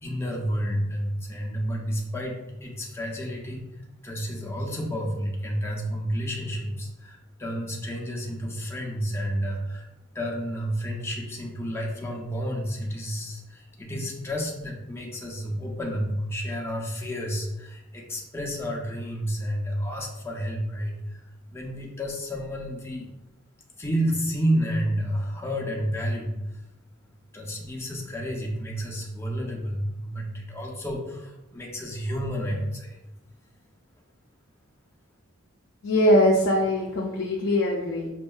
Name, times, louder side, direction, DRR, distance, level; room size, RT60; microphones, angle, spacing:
voice 1, 0.0-9.9 10.1-23.1 23.8-26.6 27.3-33.0, equal, 10° left, -2 dB, 0.6 m, -30 dB
voice 2, 35.8-38.1, left 1 dB, 60° left, -1 dB, 0.5 m, -22 dB
5.2 x 2.7 x 2.3 m, 0.95 s
head